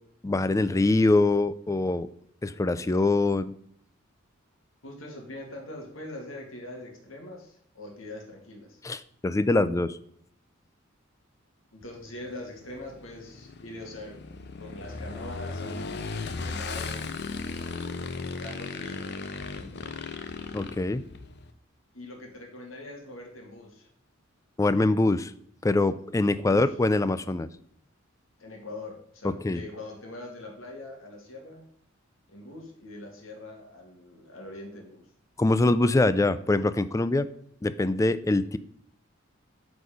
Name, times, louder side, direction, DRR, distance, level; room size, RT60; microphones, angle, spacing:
voice 1, 0.2-2.1 2.4-3.5 8.8-10.0 20.5-21.1 24.6-25.3 25.6-27.5 29.2-29.6 35.4-37.3 37.6-38.6, left 2 dB, 15° left, 14 dB, 0.3 m, -24 dB
voice 2, 4.8-8.8 11.7-14.2 14.6-16.0 16.4-17.1 18.4-19.1 21.9-23.9 26.3-26.6 28.4-31.6 32.3-35.0, left 1 dB, 75° left, 1 dB, 2.0 m, -42 dB
Motorcycle / Engine, 11.8-21.5, left 3 dB, 55° left, 0.7 m, -37 dB
9.3 x 4.2 x 5.1 m, 0.65 s
head